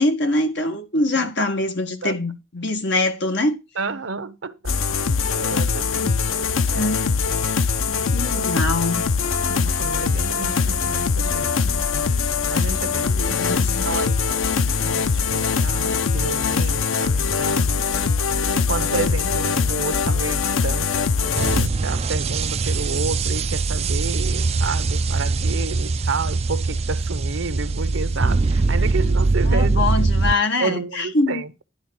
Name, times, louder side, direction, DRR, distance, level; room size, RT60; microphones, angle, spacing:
voice 1, 0.0-3.6 6.6-7.1 7.9-9.0 13.1-13.9 29.5-31.4, left 2 dB, 60° left, 1.7 m, -23 dB
voice 2, 3.8-6.9 8.0-8.5 9.5-11.8 12.5-13.4 13.8-17.8 18.5-30.1 30.6-31.6, right 3 dB, 75° right, 0.9 m, -31 dB
sound 1, 4.7-21.7, left 5 dB, 80° left, 0.6 m, -22 dB
sound 2, 21.4-30.3, right 3 dB, 30° right, 0.4 m, -22 dB
11.5 x 3.9 x 6.5 m
head